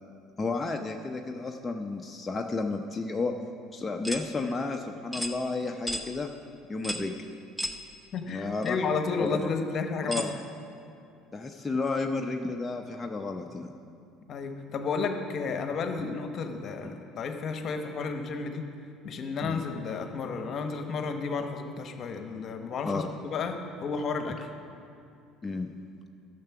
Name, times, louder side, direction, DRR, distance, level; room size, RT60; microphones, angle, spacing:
voice 1, 0.4-3.3 3.7-6.3 6.7-7.1 8.3-8.8 9.2-9.5 10.1-10.3 11.3-13.7 16.8-16.9 19.4-19.6 22.8-23.0 25.4-25.7, left 3 dB, 20° left, 2 dB, 0.7 m, -32 dB
sound 1, 4.0-4.3 5.1-5.4 5.9-6.1 6.8-7.1 7.6-7.8 8.6-8.7 10.1-10.3, equal, 5° right, 0.9 m, -33 dB
voice 2, 8.1-10.3 14.3-18.6 19.0-24.4, left 4 dB, 50° left, 6 dB, 1.1 m, -32 dB
12.0 x 6.8 x 5.8 m, 2.5 s
hypercardioid pair, 70°, 0 cm